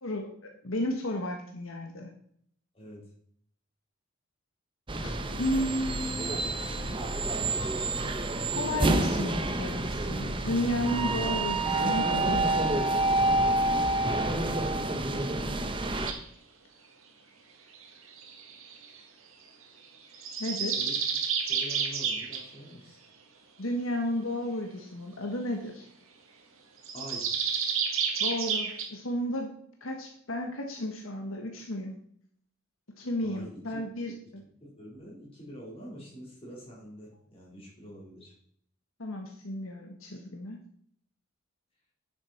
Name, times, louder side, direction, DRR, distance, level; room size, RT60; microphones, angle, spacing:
voice 1, 0.0-2.1 5.0-6.4 8.5-12.7 20.4-20.8 23.6-25.9 28.2-29.5 29.8-32.0 33.0-34.4 39.0-40.6, left 1 dB, 75° left, 3 dB, 1.5 m, -33 dB
voice 2, 2.7-3.0 20.8-20.9 21.5-23.0 26.9-27.3 33.2-33.8 34.2-34.3 34.6-38.3, equal, 30° left, -4 dB, 4.2 m, -45 dB
sound 1, 4.9-16.1, right 2 dB, 25° right, 0.8 m, -28 dB
sound 2, 16.0-16.2 17.7-19.0 20.1-22.4 26.8-28.9, right 6 dB, 75° right, 1.8 m, -30 dB
10.5 x 7.8 x 4.4 m, 0.65 s
head